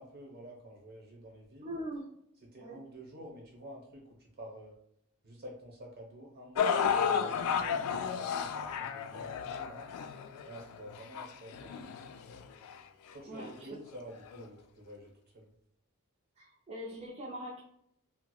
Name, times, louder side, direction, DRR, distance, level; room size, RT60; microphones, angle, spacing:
voice 1, 0.0-1.7 2.5-4.7 5.2-9.9 10.4-12.0 13.1-15.5, equal, 45° right, -2 dB, 1.0 m, -49 dB
voice 2, 1.6-2.1 2.6-2.8 13.3-13.7 16.4-17.6, equal, 30° right, -4 dB, 0.4 m, -42 dB
sound 1, 6.6-12.8 13.5-13.6 14.3-14.4, left 7 dB, 85° left, 0.3 m, -33 dB
4.6 x 2.0 x 2.2 m, 0.74 s
head